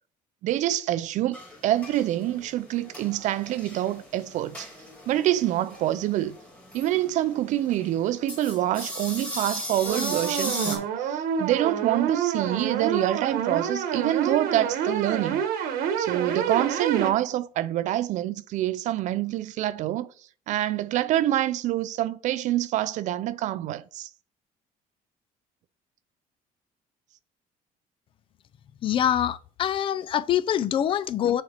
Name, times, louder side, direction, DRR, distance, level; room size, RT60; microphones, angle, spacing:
voice 1, 0.4-1.4 1.6-4.7 5.1-6.3 6.7-15.4 16.0-20.1 20.5-24.1, right 13 dB, 55° right, 0.4 m, -26 dB
sound 1, 1.3-10.8, left 1 dB, 5° left, 2.0 m, -38 dB
sound 2, 9.9-17.1, right 7 dB, 85° right, 1.2 m, -28 dB
voice 2, 28.8-31.4, left 10 dB, 35° left, 0.4 m, -25 dB
6.5 x 4.2 x 4.4 m
cardioid pair, 160°, 15 cm